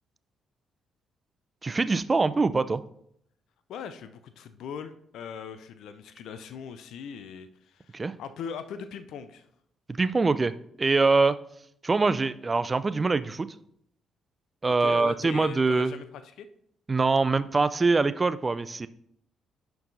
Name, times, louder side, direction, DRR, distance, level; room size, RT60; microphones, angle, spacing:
voice 1, 1.6-2.8 7.9-8.1 9.9-11.4 11.8-13.5 14.6-15.9 16.9-18.9, right 3 dB, 30° right, 15 dB, 0.3 m, -24 dB
voice 2, 3.7-9.5 14.6-16.5, left 7 dB, 65° left, 11 dB, 0.4 m, -40 dB
11.0 x 4.6 x 2.6 m, 0.72 s
hypercardioid pair, 45°, 0 cm